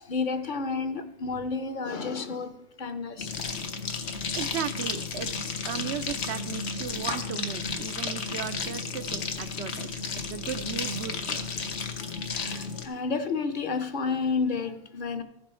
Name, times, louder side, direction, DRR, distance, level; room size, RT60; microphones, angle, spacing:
voice 1, 0.0-2.5 2.8-3.3 12.2-15.2, left 4 dB, 50° left, 9 dB, 0.8 m, -31 dB
sound 1, 3.2-12.9, left 5 dB, 80° left, 1.2 m, -33 dB
voice 2, 4.3-10.0 10.3-11.5, right 9 dB, 85° right, 12 dB, 0.9 m, -36 dB
15.0 x 6.1 x 4.3 m, 0.87 s
omnidirectional pair, 1.1 m